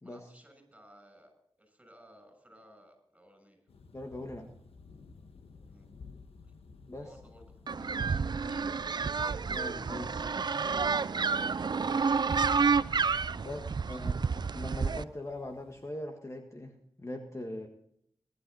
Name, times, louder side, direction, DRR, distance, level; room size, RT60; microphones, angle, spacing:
voice 1, 0.0-3.6 5.7-5.9 6.9-8.7 13.3-14.2, equal, 10° right, 6 dB, 6.8 m, -58 dB
sound 1, 3.7-15.9, left 4 dB, 85° left, 1.4 m, -56 dB
voice 2, 3.9-4.5 6.9-7.1 9.5-10.2 13.4-13.6 13.9-14.2 14.5-17.7, left 1 dB, 30° left, 4 dB, 1.6 m, -41 dB
sound 2, 7.7-15.0, right 5 dB, 50° right, 0.5 m, -30 dB
20.5 x 11.0 x 4.0 m, 0.70 s
cardioid pair, 60°, 10 cm